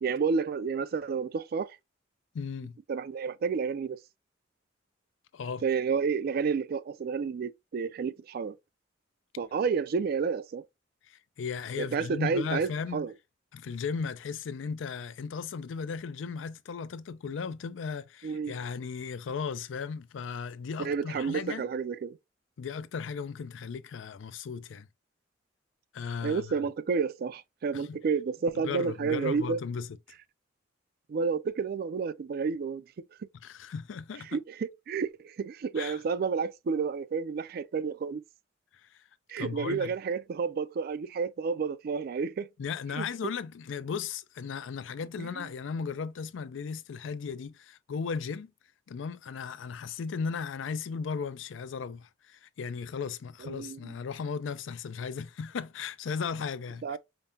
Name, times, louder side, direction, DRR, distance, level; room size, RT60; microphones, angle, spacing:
voice 1, 0.0-1.8 2.9-4.0 5.6-8.6 9.4-10.6 11.8-13.1 18.2-18.5 20.8-22.2 26.2-29.6 31.1-32.8 33.2-33.3 34.3-38.2 39.3-42.5 42.9-43.1 45.2-45.5 53.4-53.9 56.8-57.0, right 5 dB, 55° right, 0.3 m, -30 dB
voice 2, 2.3-2.8 5.3-5.6 11.1-13.1 13.5-21.7 22.6-24.9 25.9-26.5 27.7-28.0 28.6-29.9 33.4-34.4 35.8-36.0 38.8-39.0 39.4-39.9 42.6-48.5 48.9-57.0, left 6 dB, 85° left, 0.4 m, -36 dB
5.1 x 2.1 x 2.7 m
head